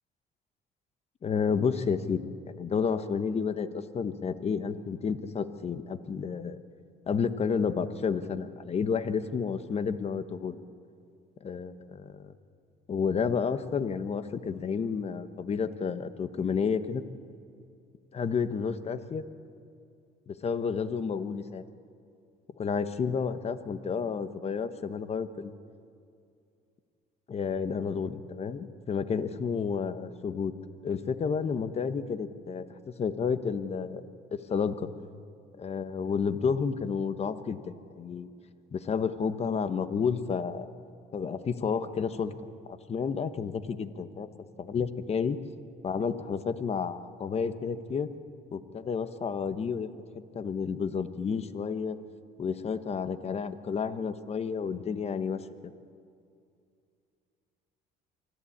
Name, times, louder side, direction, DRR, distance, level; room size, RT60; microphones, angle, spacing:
voice 1, 1.2-2.2 2.6-6.6 7.1-10.6 11.4-12.3 12.9-17.0 18.1-19.2 20.3-21.6 22.6-25.5 27.3-30.5 30.8-32.6 33.0-34.0 34.5-34.9 35.6-38.3 38.7-40.7 41.1-42.3 42.7-44.3 44.6-45.4 45.8-48.1 48.5-49.9 50.3-52.0 52.4-55.7, left 6 dB, 40° left, 12 dB, 1.1 m, -31 dB
24.0 x 14.0 x 8.7 m, 2.4 s
cardioid pair, 110°, 17 cm